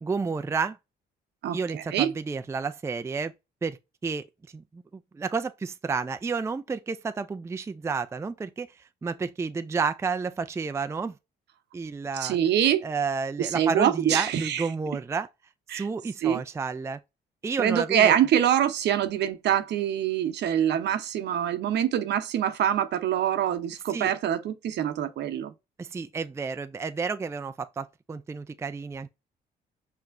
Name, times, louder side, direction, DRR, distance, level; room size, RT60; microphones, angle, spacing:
voice 1, 0.0-0.8 1.5-3.3 3.6-4.3 4.5-4.8 5.1-8.7 9.0-11.1 11.7-12.4 12.8-15.3 15.7-17.0 17.4-18.1 23.9-24.1 25.8-29.1, right 5 dB, 15° right, 0.4 m, -31 dB
voice 2, 1.4-2.1 12.1-12.8 13.4-14.7 15.7-15.9 16.2-16.4 17.6-25.5, right 10 dB, 65° right, 0.8 m, -25 dB
5.8 x 3.0 x 2.5 m
supercardioid pair, 75°, 19 cm